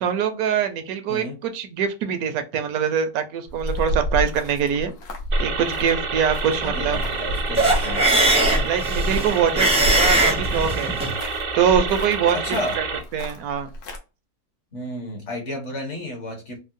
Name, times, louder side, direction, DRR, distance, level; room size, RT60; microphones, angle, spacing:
voice 1, 0.0-4.9 5.4-7.0 8.6-11.0 11.5-12.4 12.8-12.9 13.1-13.7, right 8 dB, 75° right, 1.1 m, -23 dB
sound 1, 3.5-14.0, equal, 80° left, 1.3 m, -29 dB
sound 2, 5.3-13.0, right 4 dB, 60° right, 0.6 m, -29 dB
voice 2, 6.6-8.1 12.3-12.8 14.7-16.6, left 1 dB, 55° left, 1.1 m, -32 dB
sound 3, 7.5-11.1, right 2 dB, 10° right, 0.4 m, -20 dB
3.5 x 2.0 x 2.5 m
omnidirectional pair, 1.6 m